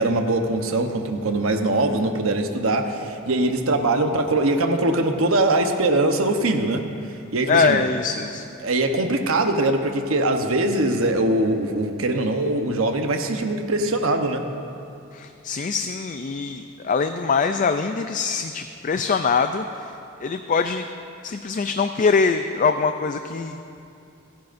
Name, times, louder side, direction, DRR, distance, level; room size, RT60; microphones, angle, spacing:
voice 1, 0.0-6.8 7.3-7.8 8.6-14.4, right 2 dB, 70° right, 5 dB, 1.0 m, -22 dB
voice 2, 7.5-8.5 15.1-19.9 20.2-20.8 21.2-23.6, left 5 dB, 40° left, 8 dB, 0.3 m, -23 dB
29.5 x 10.5 x 2.6 m, 2.6 s
head